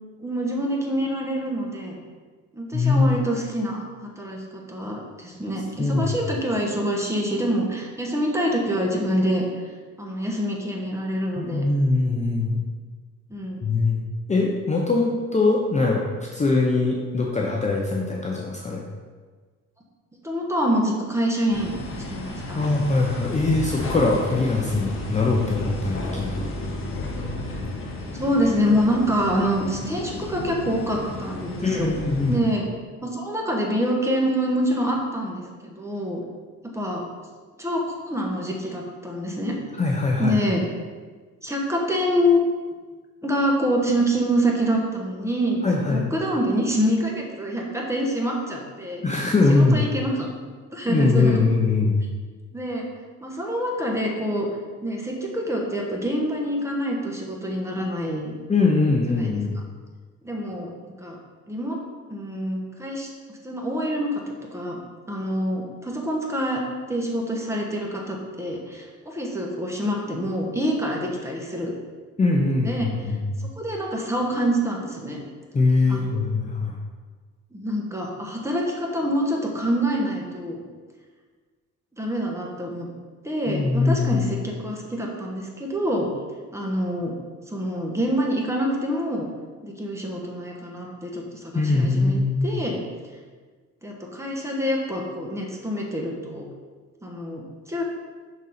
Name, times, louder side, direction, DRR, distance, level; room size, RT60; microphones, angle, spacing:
voice 1, 0.2-2.0 2.5-9.4 10.0-11.6 13.3-13.6 20.2-21.8 22.1-22.6 28.1-31.9 32.3-32.6 33.0-36.2 36.7-37.0 37.6-39.6 40.2-40.6 41.4-42.4 43.2-49.0 49.5-50.3 50.7-51.5 52.5-52.8 53.2-54.5 54.8-58.3 59.2-59.4 60.2-60.7 61.0-61.2 61.5-61.8 62.1-63.1 63.4-64.1 64.5-64.8 65.1-66.6 66.9-71.7 72.6-72.9 73.6-75.2 75.9-76.0 77.5-80.6 82.0-82.9 83.2-86.1 86.5-87.1 87.5-89.3 89.6-92.8 93.8-96.4 97.0-97.8, equal, 10° right, -1 dB, 1.3 m, -26 dB
voice 2, 2.7-3.1 5.8-6.1 11.4-12.6 13.6-14.0 14.3-18.8 22.6-26.5 31.6-32.4 39.8-40.4 45.6-46.1 49.0-49.9 50.9-52.0 58.5-59.5 72.2-73.3 75.5-76.8 83.5-84.3 91.5-92.5, left 3 dB, 25° left, -1 dB, 0.7 m, -22 dB
sound 1, 21.5-32.4, left 2 dB, 45° left, 1.1 m, -32 dB
6.1 x 4.0 x 4.2 m, 1.5 s
cardioid pair, 90°, 30 cm